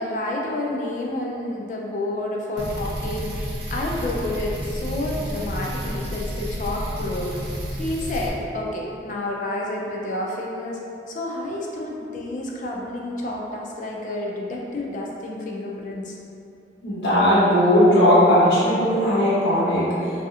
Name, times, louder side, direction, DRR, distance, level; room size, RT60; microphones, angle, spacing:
voice 1, 0.0-10.8 11.1-16.2, left 1 dB, 45° left, -2 dB, 0.4 m, -29 dB
sound 1, 2.6-8.3, equal, 65° right, 0.5 m, -30 dB
voice 2, 16.8-20.1, equal, 85° left, -10 dB, 1.1 m, -18 dB
3.2 x 2.7 x 2.4 m, 2.6 s
head